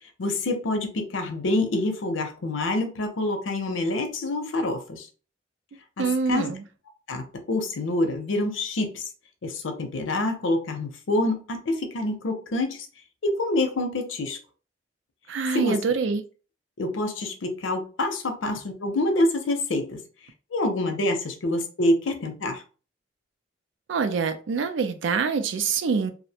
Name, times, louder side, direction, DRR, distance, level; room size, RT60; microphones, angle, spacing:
voice 1, 0.2-5.1 6.0-6.4 7.1-9.0 9.4-12.9 13.2-14.4 15.5-15.8 16.8-20.0 20.5-22.6, left 2 dB, 90° left, 0.6 m, -26 dB
voice 2, 6.0-6.6 15.3-16.2 23.9-26.1, right 5 dB, 75° right, 0.4 m, -25 dB
2.5 x 2.0 x 2.7 m
head